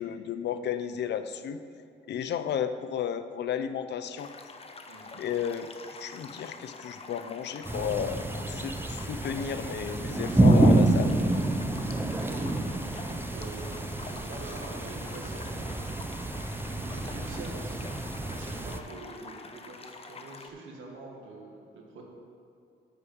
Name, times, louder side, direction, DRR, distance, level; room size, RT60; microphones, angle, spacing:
voice 1, 0.0-1.6 2.1-4.3 5.2-5.7 6.0-11.1, left 8 dB, 60° left, 11 dB, 0.6 m, -33 dB
sound 1, 4.2-20.5, left 3 dB, 30° left, 0.8 m, -46 dB
voice 2, 4.9-5.2 12.2-12.5 13.0-16.4 16.8-17.8 18.3-22.0, right 2 dB, 75° right, 0 dB, 2.0 m, -45 dB
sound 2, 7.7-18.8, right 2 dB, 10° right, 0.6 m, -28 dB
10.0 x 4.9 x 7.1 m, 2.6 s
cardioid pair, 90°, 20 cm